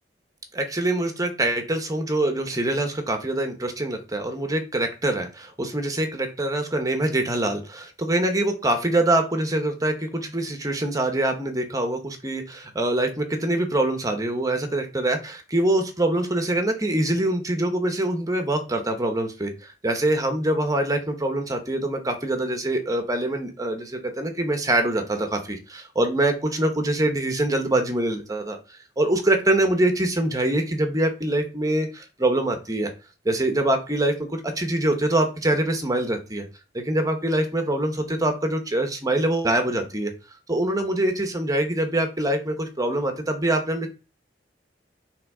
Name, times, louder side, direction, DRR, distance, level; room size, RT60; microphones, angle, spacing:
voice 1, 0.5-28.6 29.0-32.9 33.2-36.5 36.7-40.1 40.5-43.9, right 1 dB, 20° right, 5 dB, 1.1 m, -24 dB
5.7 x 3.7 x 4.9 m, 0.32 s
head